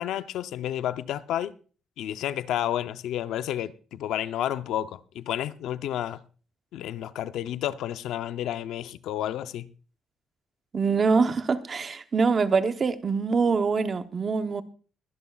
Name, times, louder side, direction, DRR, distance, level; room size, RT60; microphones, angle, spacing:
voice 1, 0.0-1.5 2.0-6.2 6.7-9.7, left 11 dB, 90° left, 0.6 m, -31 dB
voice 2, 10.7-14.6, right 4 dB, 35° right, 0.9 m, -24 dB
22.0 x 11.0 x 2.4 m
cardioid pair, 145°, 0 cm